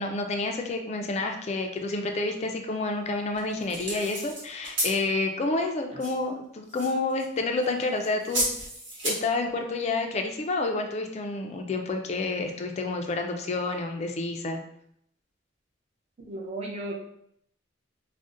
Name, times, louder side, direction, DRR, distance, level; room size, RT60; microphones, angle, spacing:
voice 1, 0.0-8.5 9.0-14.6, left 3 dB, 35° left, 4 dB, 0.3 m, -29 dB
sound 1, 3.3-5.0 6.0-6.2 6.7-7.4 7.6-9.2, right 1 dB, 65° right, 1.3 m, -32 dB
voice 2, 16.2-16.9, right 1 dB, 35° right, -2 dB, 0.6 m, -35 dB
2.6 x 2.1 x 3.6 m, 0.72 s
head